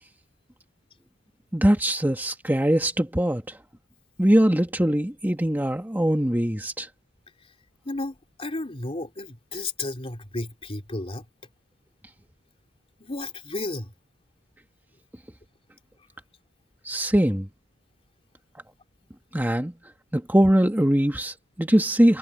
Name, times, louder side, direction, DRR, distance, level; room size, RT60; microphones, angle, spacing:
voice 1, 1.5-3.6 4.2-6.9 16.9-17.5 19.3-19.7 20.1-22.2, right 1 dB, 10° right, 1.7 m, -22 dB
voice 2, 7.8-11.3 13.0-13.9, left 2 dB, 30° left, 3.1 m, -33 dB
head